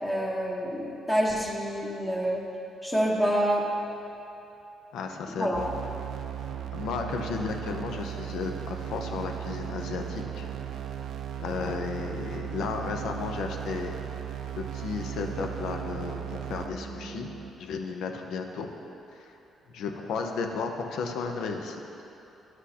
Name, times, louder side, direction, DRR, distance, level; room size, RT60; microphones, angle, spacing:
voice 1, 0.0-2.4 2.8-3.6 5.4-5.6, equal, 15° left, -3 dB, 1.0 m, -27 dB
voice 2, 4.9-5.7 6.7-10.5 11.4-13.9 14.5-17.3 17.6-18.7 19.2-19.3 19.7-21.8, left 5 dB, 80° left, 4 dB, 0.6 m, -33 dB
sound 1, 5.5-17.5, right 9 dB, 75° right, 0.4 m, -37 dB
11.0 x 6.2 x 2.8 m, 2.9 s
cardioid pair, 90°, 0 cm